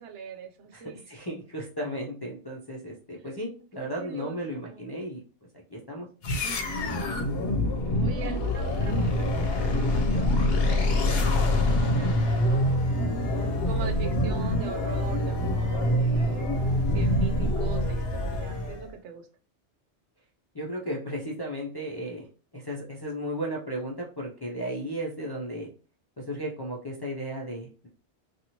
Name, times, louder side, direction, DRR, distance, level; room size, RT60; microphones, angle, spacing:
voice 1, 0.0-1.0 3.8-4.9 8.0-12.6 13.7-16.5 16.9-19.3, right 7 dB, 85° right, 4 dB, 0.9 m, -42 dB
voice 2, 0.7-5.2 5.5-6.1 20.5-22.3 22.5-25.7 26.2-27.9, equal, 40° left, -4 dB, 0.3 m, -35 dB
sound 1, 6.2-18.9, left 1 dB, 65° left, 0.8 m, -25 dB
2.8 x 2.4 x 2.8 m, 0.38 s
omnidirectional pair, 1.1 m